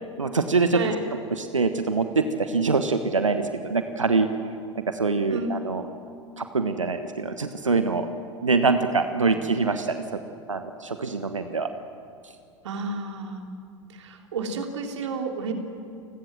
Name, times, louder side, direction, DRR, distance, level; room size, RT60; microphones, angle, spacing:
voice 1, 0.2-0.8 1.3-4.3 4.7-5.8 6.4-8.1 8.4-10.0 10.5-11.7, right 4 dB, 80° right, 8 dB, 1.2 m, -24 dB
voice 2, 12.6-13.5 13.9-15.5, right 4 dB, 65° right, 4 dB, 3.2 m, -31 dB
29.5 x 20.5 x 7.6 m, 2.5 s
figure-of-eight pair, 85°, 16 cm